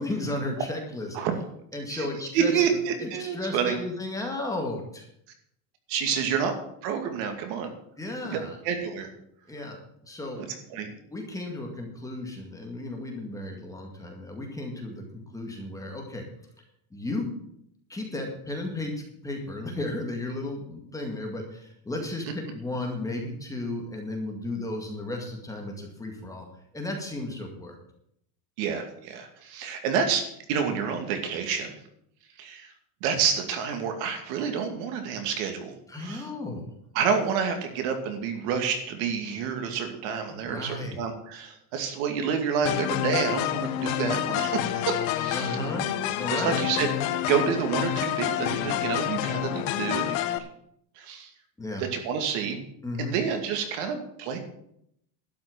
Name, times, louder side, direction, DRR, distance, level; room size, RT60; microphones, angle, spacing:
voice 1, 0.0-1.2 1.7-2.6 3.0-5.1 6.1-6.2 8.0-8.6 9.5-10.4 10.7-16.2 16.9-17.4 17.9-26.5 26.7-27.8 35.9-36.7 40.3-41.0 45.3-45.9 46.2-46.6 51.6-51.8 52.8-53.2, left 2 dB, 5° left, 1 dB, 2.0 m, -34 dB
voice 2, 2.3-3.7 5.9-6.5 6.8-7.7 8.3-8.4 8.6-9.1 10.7-10.9 28.6-31.8 32.4-32.7 33.0-35.7 36.0-36.3 36.9-45.6 46.3-50.2 51.0-51.3 51.9-52.6 53.0-54.4, right 7 dB, 60° right, 5 dB, 2.4 m, -28 dB
sound 1, 42.6-50.4, left 12 dB, 60° left, 1.1 m, -28 dB
12.0 x 6.1 x 9.1 m, 0.73 s
cardioid pair, 165°, 44 cm